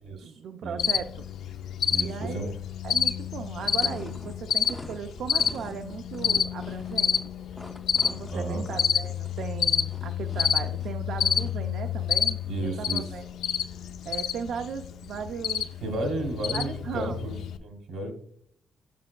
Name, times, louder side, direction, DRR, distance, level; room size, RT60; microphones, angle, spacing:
voice 1, 0.2-1.2 2.0-2.5 2.8-7.1 8.0-13.3 14.0-15.8 16.5-17.3, right 7 dB, 70° right, 7 dB, 0.4 m, -37 dB
Cricket, 0.8-17.6, left 8 dB, 75° left, 0.4 m, -29 dB
voice 2, 1.9-2.5 8.3-8.6 12.4-13.0 15.8-17.3 17.6-18.1, right 2 dB, 85° right, 4 dB, 1.7 m, -32 dB
sound 1, 3.6-11.7, left 1 dB, 10° left, 0.5 m, -46 dB
7.4 x 7.1 x 2.2 m, 0.64 s
cardioid pair, 150°, 0 cm